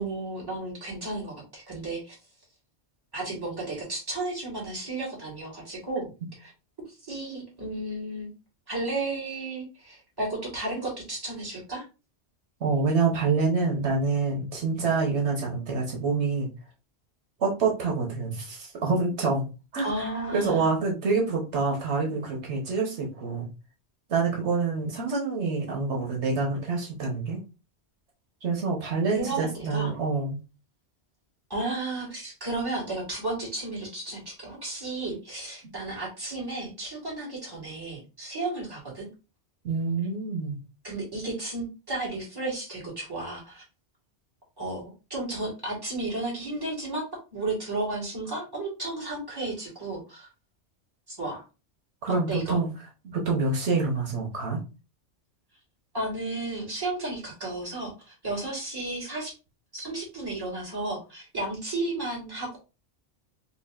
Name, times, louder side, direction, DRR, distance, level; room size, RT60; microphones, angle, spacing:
voice 1, 0.0-2.2 3.1-6.1 6.4-6.5 7.0-8.3 8.7-11.9 19.8-20.7 29.1-29.9 31.5-39.1 40.8-43.6 44.6-47.0 47.3-50.3 51.1-51.4 52.3-52.6 55.9-59.3 59.7-62.6, right 2 dB, 20° right, -4 dB, 1.7 m, -33 dB
voice 2, 12.6-16.5 17.4-19.4 19.7-19.9 20.3-23.5 24.1-27.4 28.4-30.4 39.6-40.6 52.0-52.7 53.0-54.6, right 4 dB, 75° right, -1 dB, 1.3 m, -26 dB
5.4 x 2.4 x 2.4 m, 0.31 s
omnidirectional pair, 1.2 m